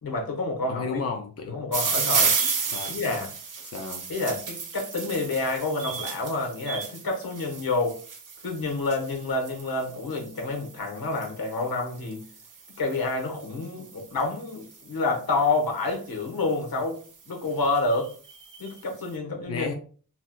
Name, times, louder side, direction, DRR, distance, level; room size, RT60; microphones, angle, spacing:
voice 1, 0.0-1.0 1.5-2.3 2.9-3.3 4.1-8.0 8.4-12.2 12.8-17.0 17.3-18.1 18.6-19.7, left 3 dB, 70° left, 1 dB, 1.0 m, -28 dB
voice 2, 0.7-1.5 2.7-2.9 3.7-4.0 19.5-19.7, left 5 dB, 45° left, 3 dB, 0.5 m, -32 dB
sound 1, 1.7-14.9 15.8-16.2 16.8-16.9 17.1-17.2 17.5-18.8, right 5 dB, 60° right, 0.6 m, -32 dB
4.1 x 2.1 x 2.2 m, 0.41 s
wide cardioid pair, 65°, 37 cm